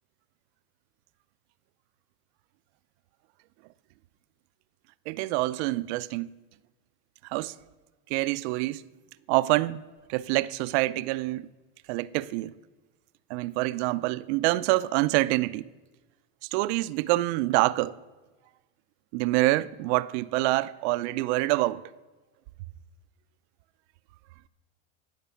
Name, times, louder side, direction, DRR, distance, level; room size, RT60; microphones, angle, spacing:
voice 1, 5.1-6.3 7.3-7.5 8.1-8.8 9.3-9.8 10.1-11.5 11.9-12.5 13.3-15.7 16.5-18.0 19.1-21.8, right 19 dB, 60° right, 0.5 m, -26 dB
16.0 x 5.3 x 7.0 m
supercardioid pair, 135°, 37 cm